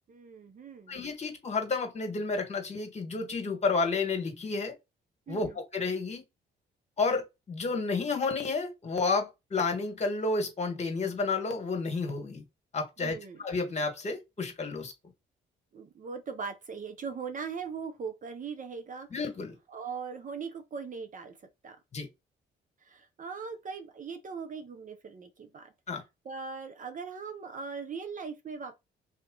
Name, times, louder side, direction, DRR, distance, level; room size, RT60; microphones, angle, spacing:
voice 1, 0.1-1.0 5.3-5.5 13.0-13.4 15.7-19.1 19.7-21.3 21.6-21.8 22.9-25.7 26.2-28.8, right 5 dB, 40° right, 0.7 m, -40 dB
voice 2, 0.9-4.7 5.3-6.2 7.0-12.4 12.7-14.9 19.1-19.5 21.9-22.1 25.9-26.0, left 4 dB, 35° left, 1.7 m, -31 dB
3.5 x 2.9 x 3.8 m
cardioid pair, 90°, 20 cm